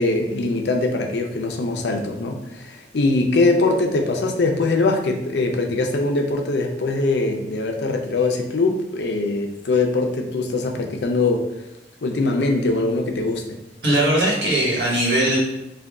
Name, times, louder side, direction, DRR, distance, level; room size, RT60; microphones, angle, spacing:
voice 1, 0.0-11.4 12.0-13.6, left 3 dB, 75° left, 3 dB, 0.5 m, -22 dB
voice 2, 13.8-15.4, right 1 dB, 80° right, -4 dB, 1.2 m, -19 dB
3.4 x 2.2 x 3.6 m, 0.91 s
head